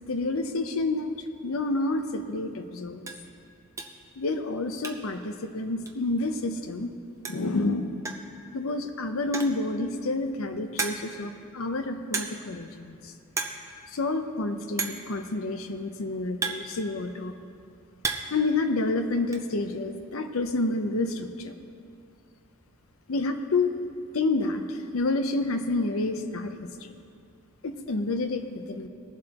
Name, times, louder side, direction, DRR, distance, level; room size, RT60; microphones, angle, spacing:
voice 1, 0.1-1.1 1.4-3.1 4.2-6.9 7.3-8.0 8.5-13.1 13.9-17.3 18.3-21.5 23.1-23.7 24.1-26.7 27.6-28.9, left 2 dB, 80° left, 8 dB, 0.6 m, -29 dB
sound 1, 2.1-2.2 2.6-2.7 3.0-3.3 3.8-4.1 4.4-5.2 5.5-5.6 5.9-6.0 7.0-7.1 7.2-7.6 8.0-8.3 9.2-9.7 10.2-10.3 10.8-11.2 12.1-12.5 12.8-13.0 13.3-13.6 13.9-14.0 14.8-15.1 15.9-17.2 17.6-18.4 18.7-19.4, right 4 dB, 15° right, 0.5 m, -33 dB
19.5 x 7.6 x 2.9 m, 2.4 s
head